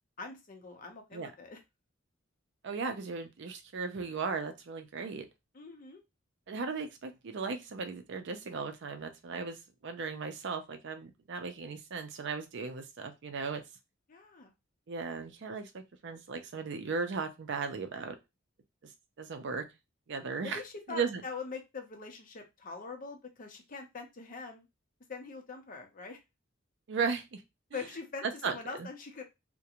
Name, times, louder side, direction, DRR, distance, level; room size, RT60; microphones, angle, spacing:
voice 1, 0.2-1.6 5.5-6.0 14.1-14.5 20.4-24.7 25.1-26.2 27.7-29.2, left 4 dB, 45° left, 4 dB, 0.6 m, -43 dB
voice 2, 2.6-5.3 6.5-13.6 14.9-18.2 19.2-19.7 20.1-20.6 20.9-21.2 26.9-27.4 28.4-28.9, right 5 dB, 65° right, 7 dB, 0.5 m, -36 dB
2.4 x 2.1 x 2.8 m, 0.23 s
head